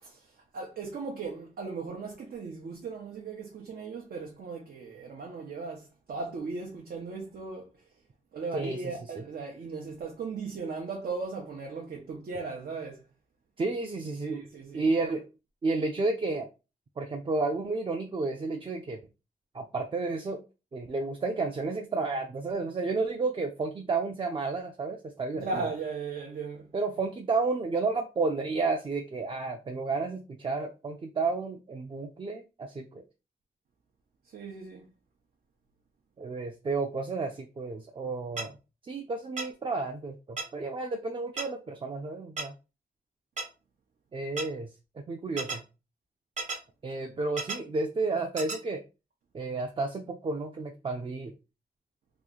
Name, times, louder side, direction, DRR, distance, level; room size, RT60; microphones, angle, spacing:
voice 1, 0.0-7.7 8.3-13.0 14.2-15.1 25.3-26.7 34.3-34.8, right 4 dB, 85° right, 0.7 m, -37 dB
voice 2, 13.6-14.4 14.7-15.3 15.6-16.5 17.0-19.0 19.5-20.4 20.7-25.7 26.7-33.0 36.2-38.5 38.8-42.5 44.1-44.7 45.1-45.6 46.8-48.8 49.3-51.3, right 3 dB, 35° right, 0.4 m, -31 dB
sound 1, 38.4-38.5 39.4-39.5 40.4-40.5 41.4-41.5 42.4-42.5 43.4-43.5 44.4-44.5 45.4-45.6 46.4-46.6 47.4-47.6 48.4-48.6, right 4 dB, 50° right, 0.8 m, -32 dB
3.0 x 2.4 x 3.7 m
wide cardioid pair, 150°, 16 cm